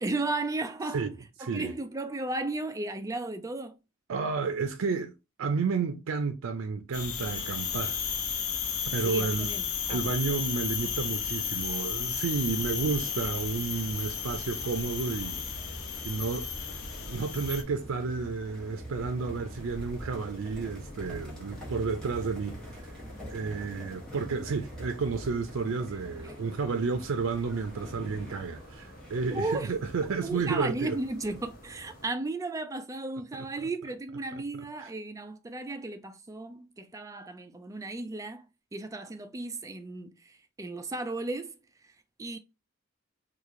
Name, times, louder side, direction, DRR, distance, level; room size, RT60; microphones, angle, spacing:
voice 1, 0.0-1.1 1.4-3.8 9.0-10.1 26.2-26.3 29.3-29.8 30.2-38.5 38.7-42.4, right 2 dB, 15° right, 0.3 m, -35 dB
voice 2, 1.4-1.7 4.1-5.1 5.4-8.0 8.9-9.5 9.9-15.5 16.0-16.7 17.0-22.8 23.3-31.0, right 4 dB, 80° right, 0.4 m, -31 dB
sound 1, 6.9-17.6, left 7 dB, 85° left, 0.7 m, -33 dB
sound 2, 12.6-29.6, equal, 5° left, 1.2 m, -45 dB
sound 3, 14.8-32.1, equal, 40° left, 1.1 m, -52 dB
3.0 x 2.4 x 3.6 m
head